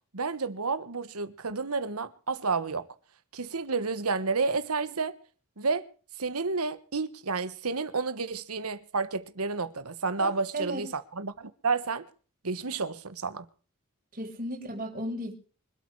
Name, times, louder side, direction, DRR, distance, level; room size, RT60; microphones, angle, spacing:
voice 1, 0.1-2.9 3.3-5.2 5.6-5.9 6.2-12.1 12.4-13.4, right 4 dB, 85° right, 1.4 m, -30 dB
voice 2, 10.2-10.8 14.1-15.3, right 1 dB, 40° right, 5.6 m, -35 dB
25.5 x 8.6 x 4.7 m
head